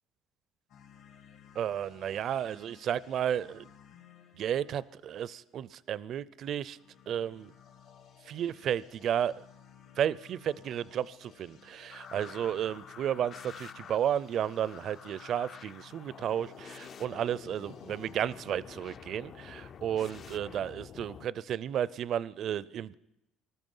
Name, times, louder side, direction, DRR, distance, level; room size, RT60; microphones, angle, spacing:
sound 1, 0.7-5.5 6.7-19.8, left 8 dB, 70° left, 3.1 m, -57 dB
voice 1, 1.5-3.7 4.3-6.8 7.1-7.5 8.2-9.4 10.0-22.9, right 9 dB, 50° right, 20 dB, 0.5 m, -33 dB
sound 2, 11.9-21.3, left 7 dB, 40° left, 0.5 m, -48 dB
19.5 x 13.0 x 5.5 m, 0.85 s
cardioid pair, 130°, 0 cm